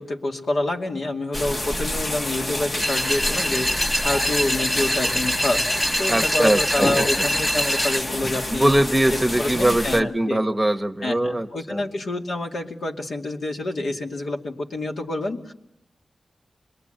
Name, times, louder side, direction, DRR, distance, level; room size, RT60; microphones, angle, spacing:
voice 1, 0.0-8.7 9.4-10.4 11.0-15.5, left 2 dB, 70° left, 0 dB, 2.5 m, -27 dB
sound 1, 1.3-10.0, left 1 dB, 30° left, 1.2 m, -29 dB
sound 2, 2.8-8.0, equal, 15° left, 1.0 m, -24 dB
voice 2, 6.1-7.0 8.5-11.8, right 1 dB, 10° right, 7 dB, 1.1 m, -21 dB
26.5 x 22.0 x 9.1 m, 0.84 s
wide cardioid pair, 150°, 0 cm